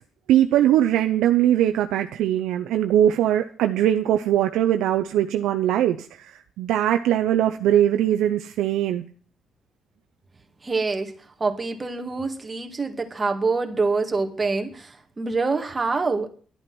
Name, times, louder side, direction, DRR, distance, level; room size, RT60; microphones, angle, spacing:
voice 1, 0.3-9.0, right 11 dB, 90° right, 6 dB, 0.7 m, -21 dB
voice 2, 10.6-11.1 11.4-16.3, right 3 dB, 25° right, 4 dB, 2.2 m, -25 dB
11.5 x 11.0 x 6.0 m, 0.44 s
cardioid pair, 90°, 0 cm